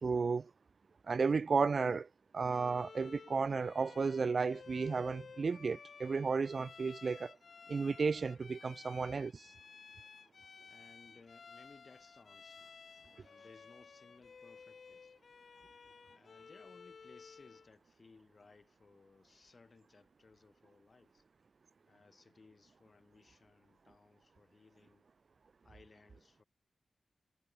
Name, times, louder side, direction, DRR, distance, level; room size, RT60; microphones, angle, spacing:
voice 1, 0.0-0.5 1.1-2.1 2.3-7.4 7.7-9.5, right 4 dB, 55° right, 0.8 m, -33 dB
Bowed string instrument, 2.5-17.7, left 5 dB, 65° left, 7.1 m, -55 dB
voice 2, 10.7-12.7 13.0-15.1 15.8-21.2 21.9-25.1 25.6-26.4, left 4 dB, 45° left, 7.1 m, -62 dB
wide cardioid pair, 120°, 0 cm